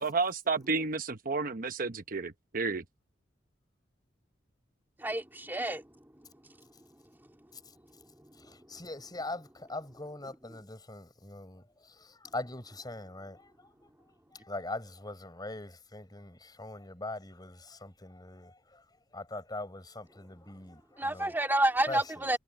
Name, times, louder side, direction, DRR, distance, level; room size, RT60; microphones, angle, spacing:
voice 1, 0.0-2.8, right 4 dB, 50° right, 0.9 m, -31 dB
voice 2, 5.0-5.8 21.0-22.4, right 1 dB, 10° right, 2.5 m, -29 dB
voice 3, 8.4-13.5 14.4-18.8 19.1-21.4 21.9-22.0, left 2 dB, 20° left, 5.9 m, -42 dB
head